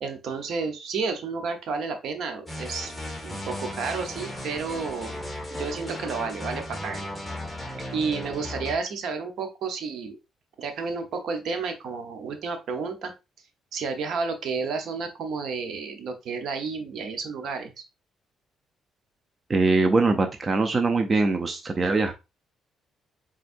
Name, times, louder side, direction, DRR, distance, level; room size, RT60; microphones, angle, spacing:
voice 1, 0.0-2.9 3.2-5.1 5.5-7.1 7.9-10.2 10.6-13.1 13.7-17.7, right 4 dB, 70° right, 7 dB, 0.8 m, -31 dB
sound 1, 2.5-8.7, left 1 dB, ahead, 1.8 m, -36 dB
voice 2, 19.5-22.1, right 3 dB, 35° right, 6 dB, 0.5 m, -22 dB
4.3 x 3.7 x 2.6 m, 0.26 s
cardioid pair, 90°, 0 cm